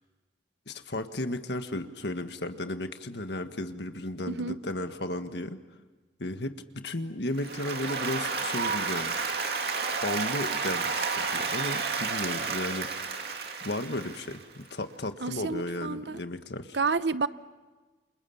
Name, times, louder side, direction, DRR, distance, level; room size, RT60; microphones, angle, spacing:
voice 1, 0.7-5.6 6.2-9.4 10.0-13.1 13.6-16.8, left 1 dB, 70° left, 8 dB, 1.6 m, -34 dB
voice 2, 4.3-4.6 15.2-16.2 16.7-17.3, right 4 dB, 75° right, 14 dB, 0.8 m, -29 dB
Applause, 7.4-14.6, right 4 dB, 60° right, 2.6 m, -31 dB
29.0 x 28.0 x 7.2 m, 1.3 s
head